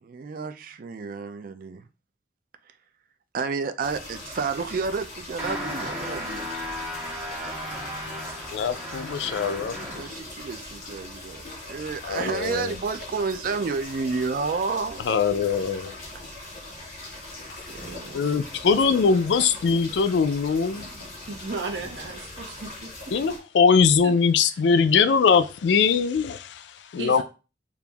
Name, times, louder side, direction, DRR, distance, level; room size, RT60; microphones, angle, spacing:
voice 1, 0.0-1.8 3.3-6.5 9.8-15.1 17.7-18.4, right 4 dB, 50° right, 0.4 m, -31 dB
sound 1, 3.8-23.4, left 2 dB, 50° left, 2.2 m, -41 dB
sound 2, 5.4-10.2, equal, 5° right, 1.5 m, -35 dB
voice 2, 8.5-10.0 12.0-12.7 15.1-16.0 17.6-17.7 18.1-20.9 23.1-27.2, left 5 dB, 70° left, 0.4 m, -22 dB
voice 3, 21.3-22.9 24.0-24.1 27.0-27.2, right 3 dB, 75° right, 0.9 m, -34 dB
6.8 x 2.5 x 2.3 m
head